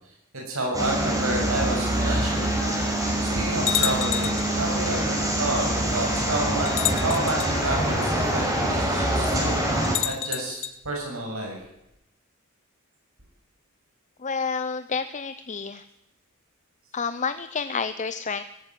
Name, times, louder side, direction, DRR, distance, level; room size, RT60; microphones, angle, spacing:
voice 1, 0.5-2.6 3.0-11.6, right 1 dB, 75° right, 1 dB, 7.2 m, -30 dB
sound 1, 0.7-10.0, right 1 dB, 15° right, 5.7 m, -25 dB
sound 2, 3.7-4.5 5.7-5.8 6.7-7.5 9.8-10.8, left 11 dB, 65° left, 1.2 m, -28 dB
voice 2, 14.2-15.8 16.9-18.4, left 5 dB, 35° left, 12 dB, 0.7 m, -29 dB
18.0 x 15.0 x 9.4 m, 0.87 s
head